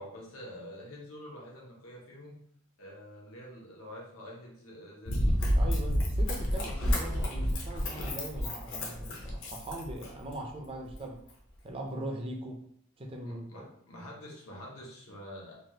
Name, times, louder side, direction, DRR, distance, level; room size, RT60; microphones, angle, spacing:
voice 1, 0.0-2.4 2.8-5.3 6.6-6.7 13.2-15.5, equal, 90° left, -2 dB, 0.9 m, -47 dB
Run, 5.1-10.3 10.9-11.0, equal, 60° left, 0.7 m, -30 dB
voice 2, 5.5-11.2 11.6-12.6 13.0-13.7, right 1 dB, 25° right, 1 dB, 0.5 m, -40 dB
3.2 x 2.4 x 2.8 m, 0.68 s
head